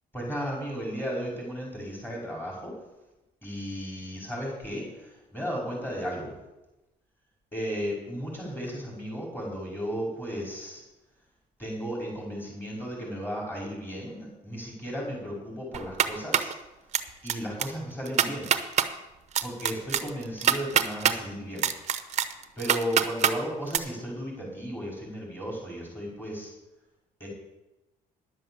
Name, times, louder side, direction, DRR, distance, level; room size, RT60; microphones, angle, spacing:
voice 1, 0.1-2.7 3.4-6.4 7.5-10.8 11.6-16.5 17.2-18.5 19.4-21.7 22.6-26.5 27.2-27.3, equal, 10° left, -3 dB, 5.2 m, -34 dB
sound 1, 15.7-16.5 16.9-17.3 17.6-17.7 18.0-18.9 19.3-21.2 21.6-23.3 23.7-23.8, right 8 dB, 45° right, 0.8 m, -24 dB
11.0 x 7.6 x 7.2 m, 1.0 s
cardioid pair, 110°, 17 cm